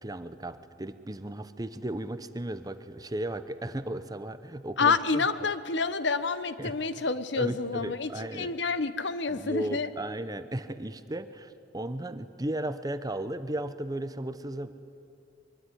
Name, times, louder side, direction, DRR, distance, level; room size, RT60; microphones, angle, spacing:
voice 1, 0.0-5.5 6.6-6.8 7.4-8.5 9.3-14.7, right 1 dB, 20° right, 12 dB, 0.9 m, -35 dB
voice 2, 4.8-8.1 8.4-9.9, left 4 dB, 65° left, 13 dB, 1.1 m, -28 dB
23.0 x 22.0 x 10.0 m, 2.4 s
head